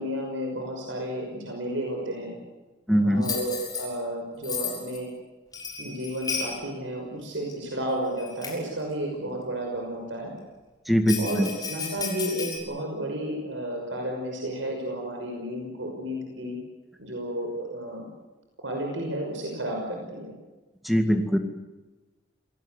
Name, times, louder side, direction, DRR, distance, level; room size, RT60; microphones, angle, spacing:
voice 1, 0.0-2.4 3.0-5.1 5.8-10.3 11.1-16.6 17.0-18.1 18.6-20.3, right 1 dB, 90° right, 1 dB, 5.9 m, -32 dB
voice 2, 2.9-3.2 10.9-11.5 20.8-21.4, equal, ahead, 6 dB, 2.1 m, -22 dB
Bell, 3.2-3.9 4.4-5.0 5.5-6.6 7.5-7.6 8.2-8.7 11.1-12.6, left 6 dB, 20° left, 6.7 m, -33 dB
27.5 x 18.5 x 8.2 m, 1.2 s
head